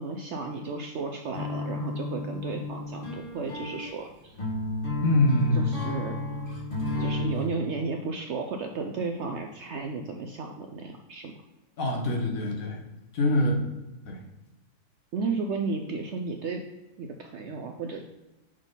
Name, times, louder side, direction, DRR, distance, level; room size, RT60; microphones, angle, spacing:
voice 1, 0.0-4.4 5.5-6.2 7.0-11.3 15.1-16.6 17.0-18.0, right 4 dB, 65° right, 3 dB, 0.7 m, -33 dB
sound 1, 1.3-7.5, left 2 dB, 35° left, 2.0 m, -32 dB
voice 2, 5.0-5.7 11.8-12.8 13.1-13.7 14.0-14.2, left 1 dB, 65° left, 0 dB, 1.5 m, -24 dB
6.4 x 3.7 x 4.0 m, 1.0 s
omnidirectional pair, 1.6 m